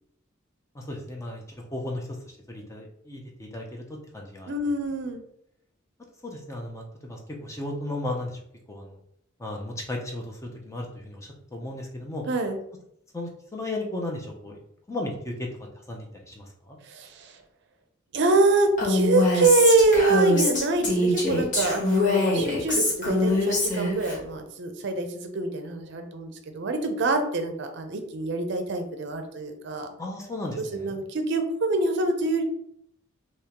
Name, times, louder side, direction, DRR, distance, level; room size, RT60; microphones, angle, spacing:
voice 1, 0.7-1.4 1.7-2.1 2.5-4.5 6.2-8.4 8.7-9.0 9.4-12.2 13.1-14.6 14.9-15.5 15.9-16.8 30.0-31.0, left 1 dB, 15° left, 0 dB, 0.5 m, -35 dB
voice 2, 4.5-5.2 12.3-12.6 16.9-17.3 18.1-29.9 30.7-32.4, right 2 dB, 60° right, 6 dB, 0.5 m, -25 dB
Female speech woman speaking, 18.8-24.2, left 2 dB, 40° left, 1.1 m, -24 dB
3.5 x 2.9 x 2.9 m, 0.73 s
head